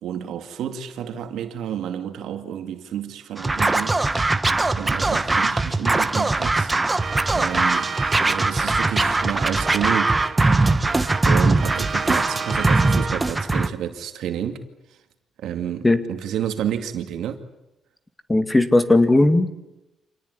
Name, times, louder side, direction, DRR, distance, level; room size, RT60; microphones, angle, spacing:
voice 1, 0.0-4.0 4.8-6.7 7.3-8.0 8.2-10.5 11.2-14.6 15.4-17.4, right 9 dB, 80° right, 2.4 m, -30 dB
Scratching (performance technique), 3.4-13.7, right 2 dB, 20° right, 1.4 m, -21 dB
sound 1, 7.0-13.5, right 5 dB, 40° right, 2.5 m, -33 dB
voice 2, 18.3-19.5, left 2 dB, 15° left, 2.3 m, -17 dB
26.5 x 19.0 x 9.8 m
cardioid pair, 90°, 0 cm